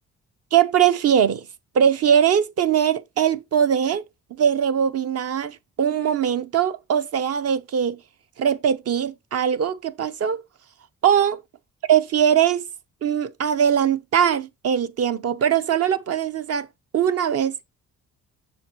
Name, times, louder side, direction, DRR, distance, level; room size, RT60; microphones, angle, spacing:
voice 1, 0.5-1.5 1.7-4.0 4.4-8.0 8.4-10.4 11.0-11.4 11.9-12.6 13.0-16.7 16.9-17.6, right 8 dB, 55° right, 0.7 m, -21 dB
7.2 x 6.1 x 2.9 m
cardioid pair, 90°, 30 cm